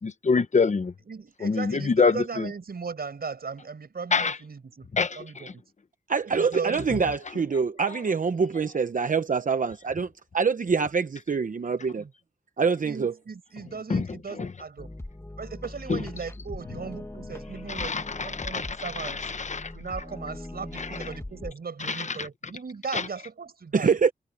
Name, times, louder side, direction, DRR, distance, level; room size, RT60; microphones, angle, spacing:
voice 1, 0.0-0.9 1.4-2.5 4.1-4.4 4.9-5.2 13.9-14.1 14.4-14.5 15.9-16.0 17.7-19.7 20.8-20.9 21.8-22.2 22.9-23.0, left 4 dB, 45° left, 1.0 m, -25 dB
voice 2, 1.0-5.6 6.3-6.8 12.0-12.1 12.8-14.9 15.4-19.3 19.7-24.0, right 5 dB, 70° right, 6.0 m, -37 dB
voice 3, 6.1-12.0 12.6-13.1 23.7-24.1, right 5 dB, 55° right, 0.9 m, -25 dB
sound 1, 14.8-21.5, left 1 dB, 15° left, 1.9 m, -41 dB
wide cardioid pair, 125°, 17 cm